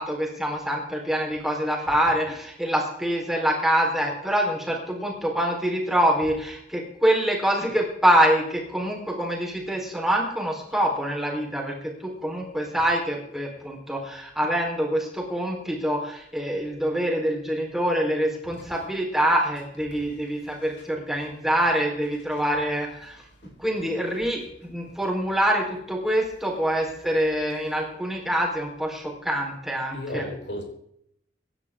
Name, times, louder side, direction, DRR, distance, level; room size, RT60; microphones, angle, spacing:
voice 1, 0.0-23.2 23.6-30.2, equal, ahead, -2 dB, 4.1 m, -25 dB
voice 2, 18.5-18.8 20.0-20.2 20.5-20.9 22.3-22.5 24.6-24.7 27.5-27.8 29.9-30.6, left 1 dB, 75° left, 1 dB, 4.6 m, -38 dB
25.0 x 11.0 x 3.7 m, 0.72 s
head